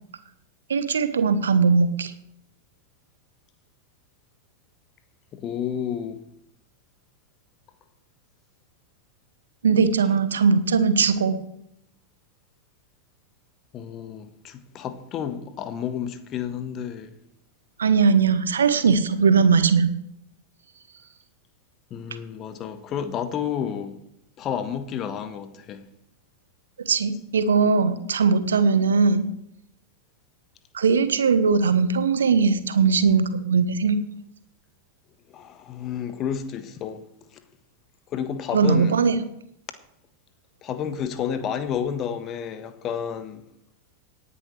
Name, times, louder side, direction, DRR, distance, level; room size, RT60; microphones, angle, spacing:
voice 1, 0.7-2.1 9.6-11.4 17.8-19.9 26.8-29.3 30.7-34.0 38.5-39.2, right 5 dB, 70° right, 1.1 m, -20 dB
voice 2, 5.3-6.2 13.7-17.1 21.9-24.0 24.4-25.8 35.3-37.0 37.3-37.4 38.1-39.1 40.6-43.4, left 8 dB, 30° left, 1.4 m, -31 dB
18.0 x 10.0 x 3.3 m
figure-of-eight pair, 90°, 0 cm